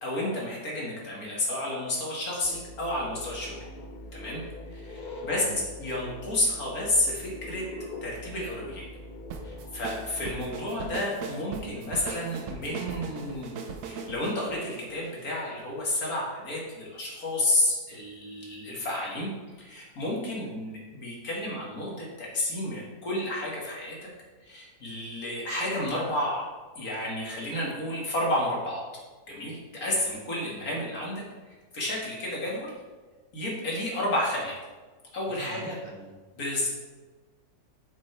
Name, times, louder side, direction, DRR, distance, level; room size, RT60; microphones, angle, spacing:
voice 1, 0.0-3.5 4.1-4.4 4.7-5.4 5.8-7.7 8.0-8.9 9.4-13.5 13.8-19.3 19.6-24.0 24.4-26.4 26.8-28.8 29.3-32.7 33.3-34.5 35.1-35.8 36.4-36.7, left 1 dB, 70° left, -4 dB, 2.4 m, -31 dB
sound 1, 2.4-10.5, left 1 dB, 55° left, 0.5 m, -42 dB
voice 2, 5.3-5.6 29.9-30.1 35.3-36.1, right 3 dB, 60° right, 0 dB, 1.6 m, -44 dB
sound 2, 9.3-15.6, right 5 dB, 85° right, 1.3 m, -39 dB
7.6 x 7.3 x 3.3 m, 1.3 s
omnidirectional pair, 1.6 m